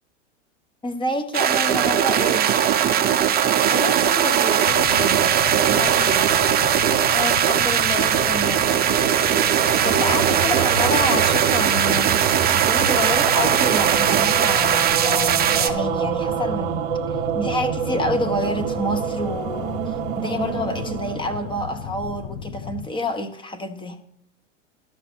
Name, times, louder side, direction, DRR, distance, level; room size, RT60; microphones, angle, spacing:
voice 1, 0.8-2.8 7.1-8.9 9.8-24.0, left 1 dB, 15° left, 1.1 m, -28 dB
sound 1, 1.3-15.7, right 9 dB, 25° right, 0.9 m, -19 dB
voice 2, 3.7-6.3 9.7-10.4 12.9-13.0, left 4 dB, 75° left, 2.0 m, -32 dB
sound 2, 4.6-22.9, left 8 dB, 45° left, 1.0 m, -35 dB
sound 3, 7.8-22.2, right 9 dB, 60° right, 1.1 m, -27 dB
12.5 x 6.0 x 6.0 m
hypercardioid pair, 100°, 36 cm